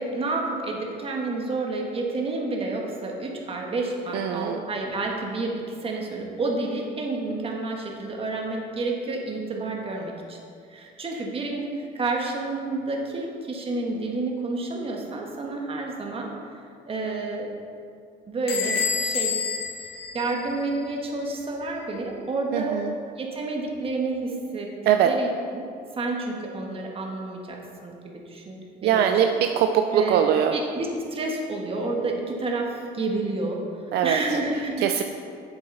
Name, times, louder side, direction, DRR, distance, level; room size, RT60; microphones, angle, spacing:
voice 1, 0.0-10.4 10.7-16.3 16.9-17.5 18.3-19.3 20.1-22.8 23.2-24.7 25.0-25.7 25.9-29.1 29.9-30.2 30.5-33.6 34.0-35.0, right 2 dB, 35° right, 0 dB, 1.4 m, -30 dB
voice 2, 4.1-4.6 22.5-22.9 24.9-25.1 28.8-30.5 33.9-34.2 34.8-35.0, right 9 dB, 75° right, 6 dB, 0.4 m, -22 dB
Bell / Door, 18.5-21.0, left 5 dB, 80° left, 2.1 m, -29 dB
7.7 x 7.2 x 3.9 m, 2.4 s
cardioid pair, 110°, 17 cm